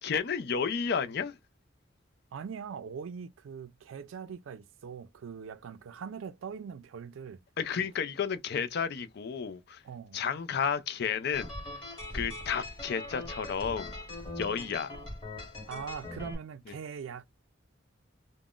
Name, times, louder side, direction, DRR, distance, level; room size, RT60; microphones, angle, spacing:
voice 1, 0.0-1.4 7.6-9.8 10.1-11.5 12.1-13.9 14.4-14.9, left 6 dB, 55° left, 0.4 m, -32 dB
voice 2, 2.3-7.4 7.7-7.8 9.8-10.2 15.7-17.3, right 6 dB, 85° right, 0.4 m, -42 dB
sound 1, 11.3-16.4, left 1 dB, 25° left, 1.4 m, -41 dB
2.4 x 2.0 x 3.5 m
head